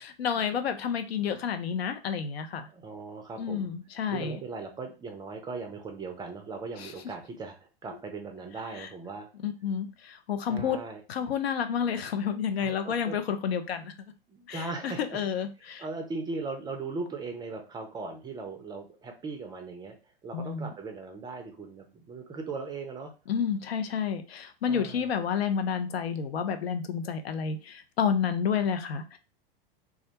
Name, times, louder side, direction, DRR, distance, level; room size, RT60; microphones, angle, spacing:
voice 1, 0.0-2.7 3.4-4.4 6.8-6.9 8.7-8.9 9.4-10.8 11.1-14.1 14.5-15.8 20.3-20.7 23.3-29.2, left 7 dB, 85° left, 8 dB, 0.5 m, -30 dB
voice 2, 2.6-3.7 4.1-9.3 10.5-11.0 12.6-13.2 14.3-15.0 15.8-19.9 20.2-23.1 24.7-25.1, right 4 dB, 15° right, 4 dB, 0.4 m, -38 dB
2.3 x 2.1 x 2.7 m, 0.32 s
hypercardioid pair, 105°, 30 cm